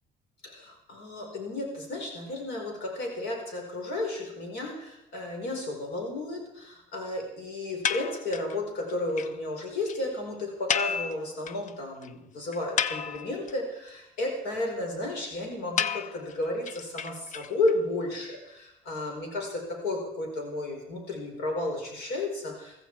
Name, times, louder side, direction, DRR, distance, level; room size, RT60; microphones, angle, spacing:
voice 1, 0.4-22.9, left 2 dB, 85° left, 1 dB, 4.7 m, -33 dB
sound 1, 7.8-8.6 8.9-9.0 9.2-9.3 9.6-9.7 9.9-10.0 10.7-11.7 12.0-12.1 12.5-13.5 15.8-17.7, left 7 dB, 50° left, 0.6 m, -31 dB
15.5 x 14.5 x 4.7 m, 0.84 s
cardioid pair, 110°, 17 cm